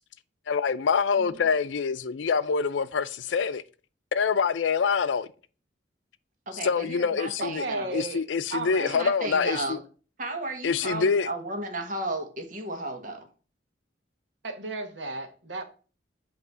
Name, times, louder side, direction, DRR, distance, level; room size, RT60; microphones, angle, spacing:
voice 1, 0.5-3.6 4.1-5.3 6.6-7.6 7.9-9.8 10.6-11.3, left 5 dB, 85° left, 0.5 m, -25 dB
voice 2, 6.5-7.9 8.8-9.8 10.2-13.3, right 2 dB, 45° right, 1.3 m, -34 dB
voice 3, 7.4-8.2 8.5-9.1 14.4-15.6, right 2 dB, 70° right, 1.2 m, -34 dB
8.2 x 3.0 x 6.1 m
head